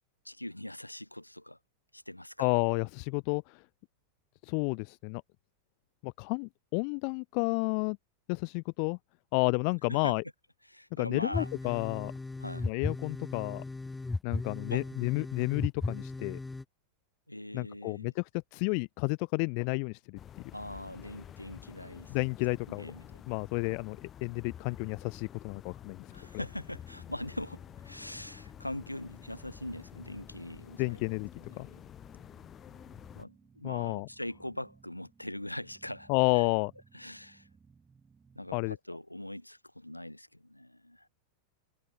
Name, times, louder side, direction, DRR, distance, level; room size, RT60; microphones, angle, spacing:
voice 1, 0.2-1.6 1.9-2.5 9.9-10.2 10.7-11.5 12.4-12.7 14.7-14.9 17.3-18.1 20.5-22.1 22.5-23.2 26.1-31.0 31.4-31.8 33.1-36.5 36.9-37.5 38.3-41.1, left 1 dB, 85° left, 4.4 m, -42 dB
voice 2, 2.4-3.6 4.4-5.2 6.0-8.0 8.3-9.0 9.3-10.2 11.0-12.1 12.6-13.6 14.2-16.4 17.5-20.2 20.4-20.5 22.1-22.9 23.3-26.1 30.8-31.3 31.6-31.7 33.6-34.1 36.1-36.7 38.5-38.8, left 40 dB or more, 45° left, 0.8 m, -31 dB
sound 1, 11.3-16.6, left 3 dB, 10° left, 0.3 m, -36 dB
sound 2, 20.2-33.3, left 10 dB, 25° left, 2.5 m, -50 dB
sound 3, 27.6-38.7, right 5 dB, 15° right, 6.1 m, -61 dB
figure-of-eight pair, 90°, 0 cm